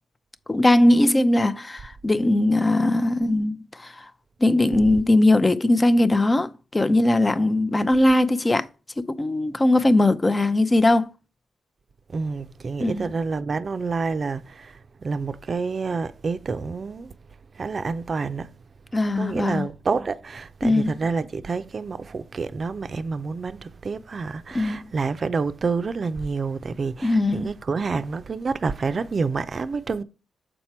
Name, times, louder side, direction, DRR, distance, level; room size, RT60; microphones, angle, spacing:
voice 1, 0.5-4.0 4.4-8.7 9.0-11.1 12.8-13.1 18.9-19.7 20.6-20.9 24.5-24.8 27.0-27.5, left 1 dB, 25° left, 0.6 m, -20 dB
voice 2, 12.1-17.1 17.6-18.5 19.1-30.0, right 4 dB, 45° right, 0.5 m, -28 dB
6.6 x 4.4 x 4.4 m
cardioid pair, 65°, 0 cm